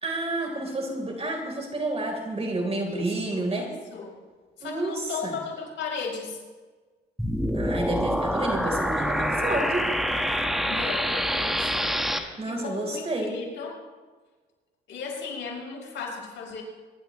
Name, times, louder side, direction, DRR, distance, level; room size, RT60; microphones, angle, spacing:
voice 1, 0.0-3.7 4.6-5.4 7.5-9.8 12.4-13.3, right 2 dB, 30° right, 2 dB, 4.1 m, -30 dB
voice 2, 2.8-4.2 4.6-6.4 10.6-12.0 12.4-13.8 14.9-16.6, left 5 dB, 70° left, -1 dB, 4.8 m, -36 dB
sound 1, 7.2-12.2, equal, ahead, 1.5 m, -26 dB
25.0 x 11.5 x 3.2 m, 1.4 s
cardioid pair, 90°, 20 cm